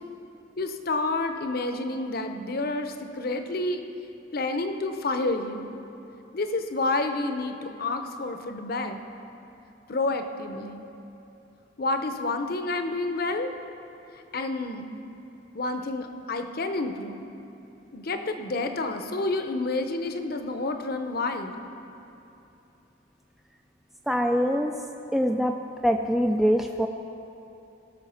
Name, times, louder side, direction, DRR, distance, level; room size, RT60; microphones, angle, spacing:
voice 1, 0.6-3.8 4.3-5.8 6.3-9.0 9.9-10.8 11.8-13.5 14.3-14.9 15.5-17.2 17.9-21.5, left 2 dB, 50° left, 7 dB, 0.7 m, -29 dB
voice 2, 24.1-24.7 25.1-25.5 25.8-26.9, equal, ahead, 3 dB, 0.3 m, -23 dB
18.5 x 6.2 x 5.7 m, 3.0 s
head